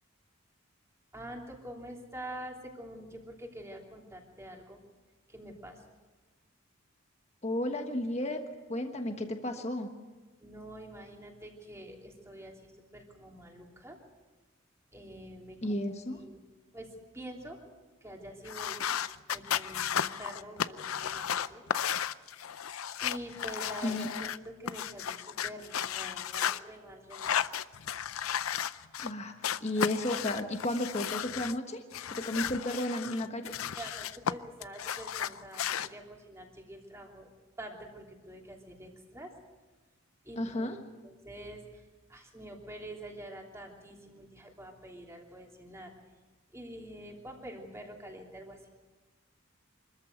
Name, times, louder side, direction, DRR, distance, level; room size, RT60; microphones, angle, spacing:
voice 1, 1.1-4.8 5.3-5.8 10.4-14.0 14.9-15.8 16.2-16.4 16.7-17.6 18.0-21.6 23.0-27.3 33.7-37.3 37.6-39.3 40.2-40.7 41.0-41.8 42.1-45.9 46.5-48.7, right 1 dB, 15° right, 0 dB, 3.0 m, -46 dB
voice 2, 7.4-8.4 8.7-9.9 15.6-16.2 23.8-24.1 29.0-29.3 29.6-31.8 32.2-33.5 40.4-40.8, left 1 dB, 30° left, 5 dB, 1.3 m, -33 dB
sound 1, 18.5-24.4 24.7-26.6 27.1-29.1 29.4-31.6 31.9-34.3 34.6-35.9, left 9 dB, 90° left, 0.6 m, -34 dB
24.5 x 14.0 x 8.0 m, 1.3 s
head